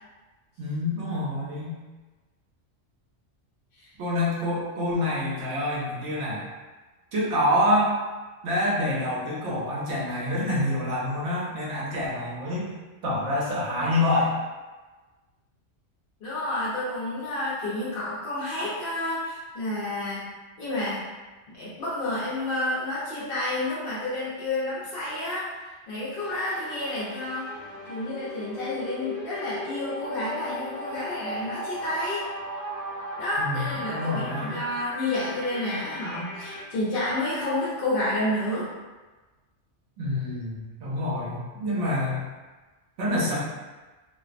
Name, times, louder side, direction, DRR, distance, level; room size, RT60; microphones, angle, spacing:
voice 1, 0.6-1.8 4.0-6.5 7.1-7.9 8.4-12.7 13.0-14.4 33.4-34.6 40.0-42.2 43.0-43.4, left 1 dB, 85° right, -6 dB, 1.0 m, -27 dB
voice 2, 16.2-20.3 20.6-21.0 21.6-27.5 27.9-32.3 33.2-38.7, left 1 dB, 55° left, -9 dB, 0.8 m, -30 dB
sound 1, 26.2-36.6, left 1 dB, 20° left, 0.6 m, -37 dB
2.5 x 2.0 x 2.4 m, 1.3 s
omnidirectional pair, 1.2 m